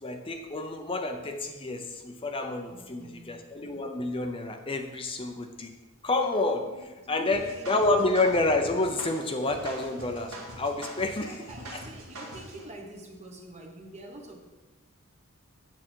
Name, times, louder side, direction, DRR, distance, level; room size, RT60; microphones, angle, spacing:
voice 1, 0.0-5.7 6.0-6.7 7.1-11.3 11.7-11.8, left 2 dB, 25° left, 4 dB, 0.7 m, -29 dB
voice 2, 2.7-3.5 6.6-8.1 11.1-14.4, right 1 dB, 30° right, 1 dB, 1.3 m, -46 dB
sound 1, 7.3-12.6, right 1 dB, 90° right, 1.8 m, -43 dB
8.8 x 7.2 x 4.5 m, 1.2 s
head